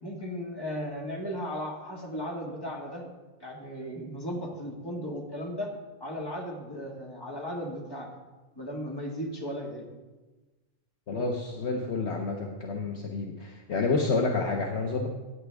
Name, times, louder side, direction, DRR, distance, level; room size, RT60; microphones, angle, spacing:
voice 1, 0.0-3.0 3.4-5.7 6.0-8.1 8.6-9.9, equal, 20° left, -2 dB, 1.9 m, -36 dB
voice 2, 11.1-15.1, left 3 dB, 60° left, 1 dB, 1.2 m, -29 dB
15.5 x 9.2 x 3.4 m, 1.2 s
omnidirectional pair, 1.3 m